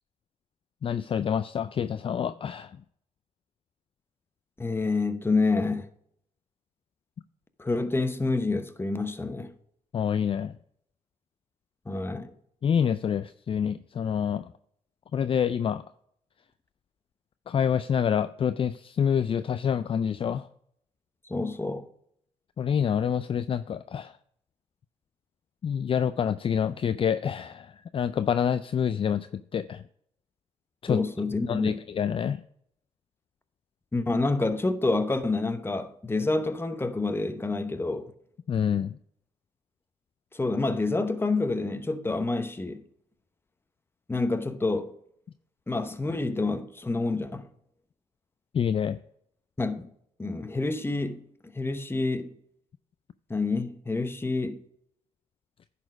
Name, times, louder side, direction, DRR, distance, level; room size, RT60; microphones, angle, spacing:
voice 1, 0.8-2.7 9.9-10.5 12.6-14.4 15.1-15.8 17.5-20.5 22.6-24.1 25.6-29.3 29.5-29.8 30.8-31.0 31.5-32.4 38.5-39.0 48.5-49.0, left 8 dB, 40° left, 0.4 m, -27 dB
voice 2, 4.6-5.9 7.6-9.5 11.9-12.3 21.3-21.9 30.9-31.8 33.9-38.1 40.3-42.8 44.1-44.9 45.7-47.5 49.6-49.9 50.2-51.2 51.5-52.3 53.3-54.6, left 3 dB, 15° left, 0.9 m, -28 dB
10.5 x 4.3 x 5.0 m
supercardioid pair, 60°, 14 cm